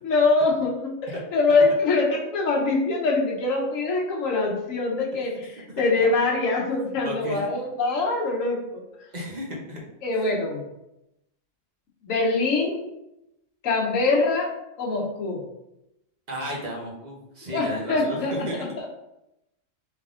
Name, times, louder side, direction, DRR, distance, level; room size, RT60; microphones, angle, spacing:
voice 1, 0.0-8.8 10.0-10.6 12.0-12.9 13.6-14.5 14.8-15.4 17.5-18.5 18.8-18.9, left 3 dB, 80° left, -2 dB, 1.3 m, -24 dB
voice 2, 7.0-7.4 9.1-9.8 10.2-10.3 16.3-18.6, equal, 35° right, -2 dB, 1.1 m, -33 dB
3.7 x 3.4 x 3.6 m, 0.87 s
omnidirectional pair, 1.4 m